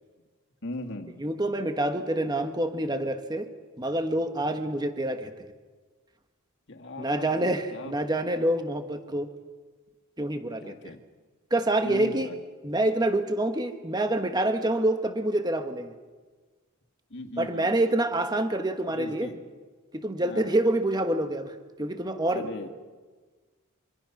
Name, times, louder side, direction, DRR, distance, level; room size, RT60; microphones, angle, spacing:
voice 1, 0.6-1.2 6.7-7.9 10.6-11.0 11.8-12.4 17.1-17.8 18.9-19.4 20.2-20.6 22.3-22.7, left 2 dB, 55° left, 3 dB, 2.2 m, -39 dB
voice 2, 1.2-3.5 3.8-5.3 7.0-9.3 10.2-10.9 11.5-12.3 12.6-15.9 17.4-19.3 19.9-22.5, right 1 dB, 20° right, 7 dB, 1.3 m, -27 dB
26.5 x 25.0 x 6.0 m, 1.4 s
head